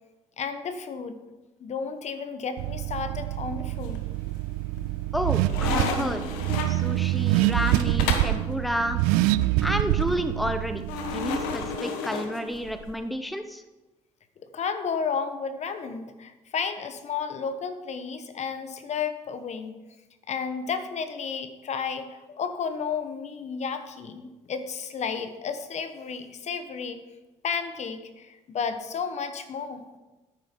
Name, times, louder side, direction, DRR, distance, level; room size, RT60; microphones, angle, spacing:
voice 1, 0.4-1.2 1.6-4.0 14.5-19.8 20.3-27.0 27.4-29.9, left 6 dB, 50° left, 9 dB, 1.2 m, -32 dB
Car / Accelerating revving vroom, 2.6-11.8, right 16 dB, 85° right, 0.4 m, -26 dB
sound 1, 3.8-4.3 4.8-8.4 10.9-12.9, left 5 dB, 90° left, 1.2 m, -32 dB
voice 2, 5.1-6.2 6.7-9.0 9.6-10.8 11.1-13.6, equal, ahead, 8 dB, 0.8 m, -30 dB
9.8 x 8.9 x 4.6 m, 1.1 s
supercardioid pair, 75°, 15 cm